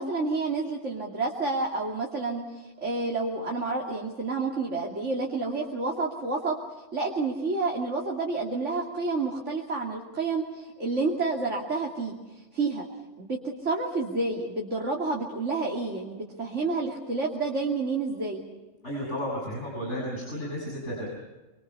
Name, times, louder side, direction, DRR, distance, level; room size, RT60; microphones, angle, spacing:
voice 1, 0.0-6.6 6.9-12.9 13.2-18.4, right 3 dB, 75° right, -1 dB, 3.1 m, -29 dB
voice 2, 18.8-21.1, equal, 70° left, -4 dB, 7.8 m, -33 dB
28.0 x 25.5 x 5.6 m, 1.1 s
omnidirectional pair, 1.3 m